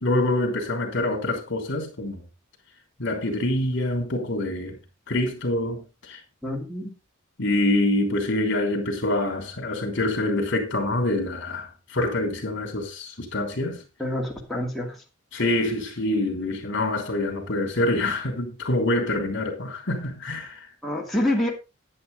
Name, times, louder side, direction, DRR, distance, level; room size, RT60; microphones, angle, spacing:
voice 1, 0.0-2.2 3.0-4.8 5.1-6.2 7.4-13.8 15.3-20.7, left 1 dB, 60° left, 3.2 m, -26 dB
voice 2, 6.4-6.9 14.0-15.0 20.8-21.5, left 1 dB, ahead, 2.4 m, -27 dB
9.9 x 9.9 x 3.9 m
head